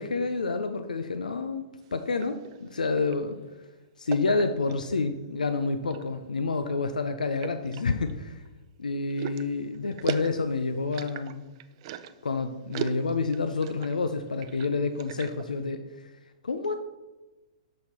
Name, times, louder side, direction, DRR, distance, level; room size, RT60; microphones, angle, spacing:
voice 1, 0.0-1.6 1.9-3.4 4.0-8.4 8.8-11.4 12.2-16.1 16.4-16.7, left 3 dB, 85° left, 8 dB, 0.5 m, -29 dB
sound 1, 1.8-3.2 4.1-5.0 5.6-6.2 6.6-6.7 7.4-8.5 9.1-12.3 12.7-14.0 14.3-15.5, right 9 dB, 45° right, 0.5 m, -38 dB
6.4 x 6.2 x 4.3 m, 1.1 s
hypercardioid pair, 120°, 4 cm